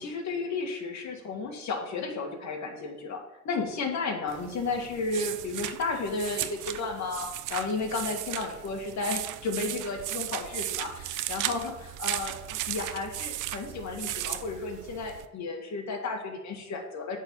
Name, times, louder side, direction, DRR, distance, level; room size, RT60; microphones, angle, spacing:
voice 1, 0.0-17.2, left 3 dB, 65° left, 1 dB, 2.1 m, -33 dB
sound 1, 4.3-15.3, right 14 dB, 90° right, 0.5 m, -36 dB
8.8 x 4.1 x 7.3 m, 0.96 s
cardioid pair, 90°, 30 cm